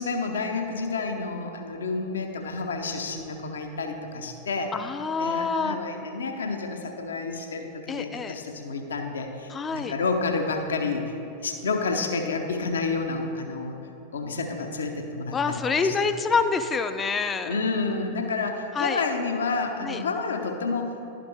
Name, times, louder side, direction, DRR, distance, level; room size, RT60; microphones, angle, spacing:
voice 1, 0.0-4.7 5.2-11.1 11.4-13.8 14.1-16.0 17.4-20.9, left 4 dB, 70° left, 5 dB, 0.7 m, -29 dB
voice 2, 4.7-5.8 7.9-8.3 9.5-9.9 15.3-17.6 18.7-19.0 19.8-20.0, left 5 dB, 20° left, 9 dB, 0.4 m, -26 dB
11.5 x 5.0 x 3.4 m, 2.9 s
figure-of-eight pair, 90°, 0 cm